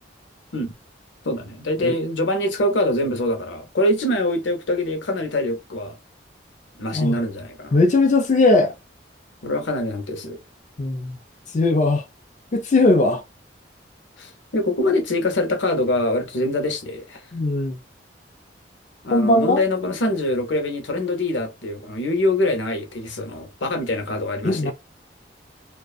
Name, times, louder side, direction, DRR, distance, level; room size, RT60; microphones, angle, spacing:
voice 1, 1.2-5.9 6.8-7.8 9.4-10.4 14.2-17.2 19.0-24.7, left 1 dB, 85° left, 0.7 m, -24 dB
voice 2, 7.7-8.7 10.8-11.2 11.5-12.0 12.5-13.2 17.3-17.8 19.1-19.6 24.4-24.7, left 2 dB, 40° left, 0.4 m, -18 dB
2.4 x 2.2 x 2.3 m
head